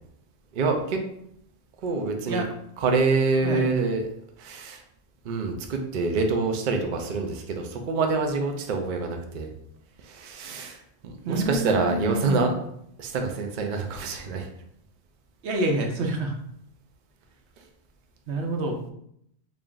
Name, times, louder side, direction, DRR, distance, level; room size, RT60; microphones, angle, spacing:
voice 1, 0.5-1.0 1.8-2.4 2.8-4.1 4.4-4.8 5.2-9.5 10.0-12.5 13.0-14.5 17.6-17.7, right 3 dB, 55° right, 3 dB, 0.6 m, -26 dB
voice 2, 11.2-12.5 15.4-16.3 18.3-18.8, right 2 dB, 75° right, 3 dB, 0.9 m, -27 dB
3.3 x 2.5 x 3.7 m, 0.73 s
omnidirectional pair, 1.1 m